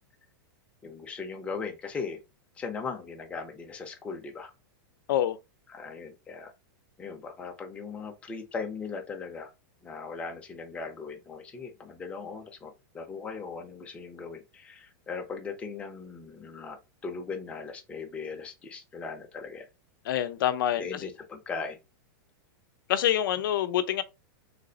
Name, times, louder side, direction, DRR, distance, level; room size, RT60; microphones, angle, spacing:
voice 1, 0.8-2.2 2.6-4.5 5.7-6.5 7.0-9.5 9.8-19.7 20.8-21.8, left 5 dB, 10° left, 0.5 m, -38 dB
voice 2, 20.1-20.8 22.9-24.0, left 11 dB, 70° left, 0.5 m, -26 dB
3.3 x 2.0 x 3.8 m
supercardioid pair, 165°, 12 cm